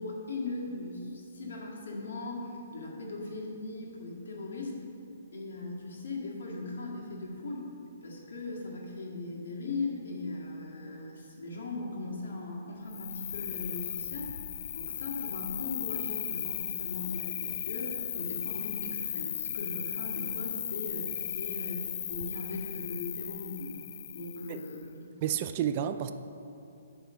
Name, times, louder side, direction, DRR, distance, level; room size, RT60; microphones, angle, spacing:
voice 1, 0.0-4.8 5.3-7.6 8.0-14.3 14.8-23.7 24.1-24.8, left 2 dB, 75° left, -2 dB, 1.8 m, -39 dB
Cricket, 12.9-24.8, left 9 dB, 45° left, 0.3 m, -36 dB
voice 2, 25.2-26.1, right 10 dB, 35° right, 10 dB, 0.3 m, -30 dB
9.0 x 3.6 x 6.3 m, 2.7 s
hypercardioid pair, 160°, 0 cm